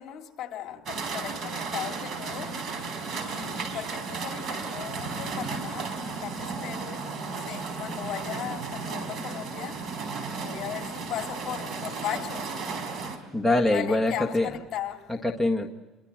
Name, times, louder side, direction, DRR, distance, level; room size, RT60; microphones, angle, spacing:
voice 1, 0.0-10.0 10.4-12.7 13.7-15.1, left 10 dB, 50° left, 3.1 m, -37 dB
sound 1, 0.9-13.2, right 4 dB, 50° right, 4.5 m, -34 dB
voice 2, 13.3-14.5 15.1-15.7, left 2 dB, ahead, 1.5 m, -24 dB
30.0 x 23.5 x 7.6 m
cardioid pair, 135°, 0 cm